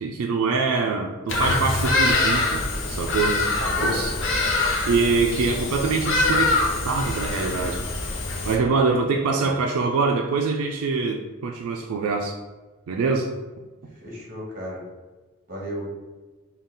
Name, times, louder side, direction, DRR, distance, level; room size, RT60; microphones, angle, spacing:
voice 1, 0.0-3.4 3.8-4.1 4.9-6.6 6.8-7.8 8.5-12.3 12.9-13.3, right 4 dB, 80° right, 2 dB, 0.3 m, -24 dB
Bird vocalization bird call bird song, 1.3-8.6, left 2 dB, 55° left, 0.6 m, -24 dB
voice 2, 3.2-4.1 9.3-9.5 14.0-14.8 15.5-15.9, left 1 dB, 40° right, -3 dB, 1.1 m, -34 dB
3.8 x 2.3 x 3.7 m, 1.3 s
head